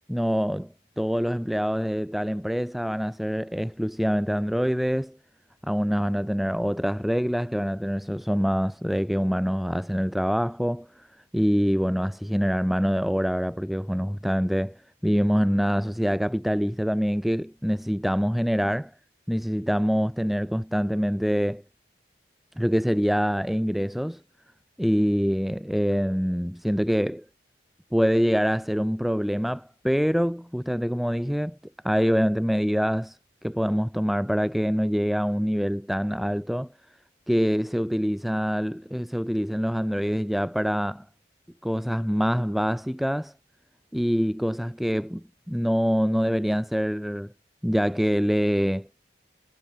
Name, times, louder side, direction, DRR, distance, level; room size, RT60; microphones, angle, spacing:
voice 1, 0.1-5.2 5.6-11.1 11.3-18.9 19.3-21.6 22.6-24.2 24.8-27.2 27.9-31.6 31.8-33.2 33.4-36.7 37.3-41.0 41.6-43.3 43.9-47.3 47.6-48.9, equal, ahead, 0.6 m, -25 dB
head